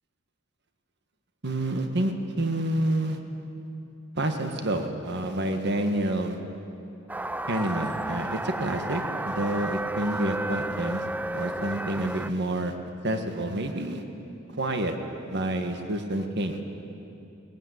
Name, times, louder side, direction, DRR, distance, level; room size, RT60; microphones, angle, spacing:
voice 1, 1.4-3.2 4.2-6.4 7.5-11.0 11.3-12.7 13.0-14.0 14.6-14.9 15.3-16.6, right 1 dB, 55° right, 6 dB, 1.6 m, -28 dB
sound 1, 7.1-12.3, right 1 dB, 10° right, 0.4 m, -32 dB
20.5 x 15.5 x 9.9 m, 2.8 s
head